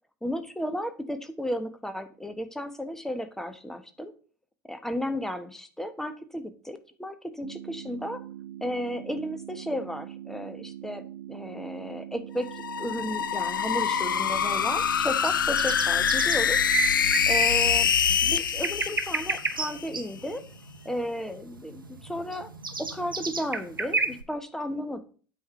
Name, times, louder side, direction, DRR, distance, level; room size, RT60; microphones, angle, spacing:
voice 1, 0.2-4.1 4.7-8.2 8.6-16.7 17.3-17.9 18.2-20.4 20.8-22.5 22.8-25.0, equal, 5° left, 9 dB, 1.2 m, -34 dB
sound 1, 7.4-17.4, right 12 dB, 65° right, 0.4 m, -42 dB
sound 2, 12.4-19.9, left 8 dB, 75° left, 0.4 m, -25 dB
sound 3, 14.2-24.2, right 3 dB, 85° right, 0.9 m, -32 dB
8.5 x 4.7 x 5.7 m, 0.41 s
figure-of-eight pair, 75°, 11 cm